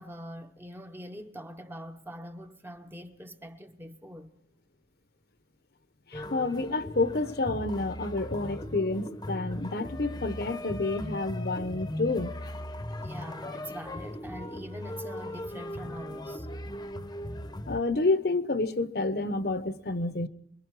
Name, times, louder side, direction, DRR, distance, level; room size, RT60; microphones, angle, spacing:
voice 1, 0.0-4.3 13.0-16.5, equal, 10° right, 0.9 m, -43 dB
voice 2, 6.1-12.4 17.7-20.3, left 3 dB, 55° left, 0.9 m, -29 dB
sound 1, 6.1-17.8, left 1 dB, 20° left, 0.9 m, -38 dB
24.5 x 23.0 x 4.8 m
head